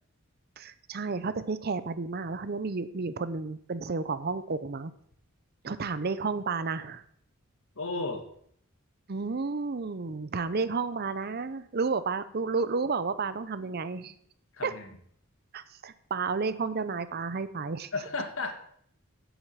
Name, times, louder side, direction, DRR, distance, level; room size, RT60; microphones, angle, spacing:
voice 1, 0.6-4.9 5.6-7.0 9.1-14.1 14.6-14.7 15.5-17.9, right 4 dB, 45° right, 14 dB, 0.6 m, -31 dB
voice 2, 7.8-8.2 14.5-14.9 17.9-18.5, left 3 dB, 65° left, 6 dB, 1.6 m, -33 dB
8.1 x 7.4 x 6.6 m, 0.65 s
head